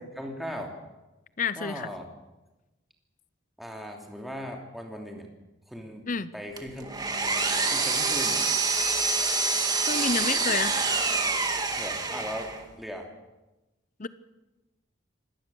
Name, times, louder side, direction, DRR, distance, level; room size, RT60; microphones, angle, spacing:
voice 1, 0.1-0.7 1.6-2.1 3.6-5.3 5.7-6.9 7.7-8.4 11.7-13.1, equal, ahead, 1 dB, 2.9 m, -38 dB
voice 2, 1.4-1.9 6.1-6.3 9.9-10.8 14.0-14.1, left 5 dB, 40° left, 15 dB, 0.8 m, -29 dB
Power tool, 6.6-12.6, right 4 dB, 20° right, 2.1 m, -26 dB
25.0 x 18.5 x 7.1 m, 1.0 s
head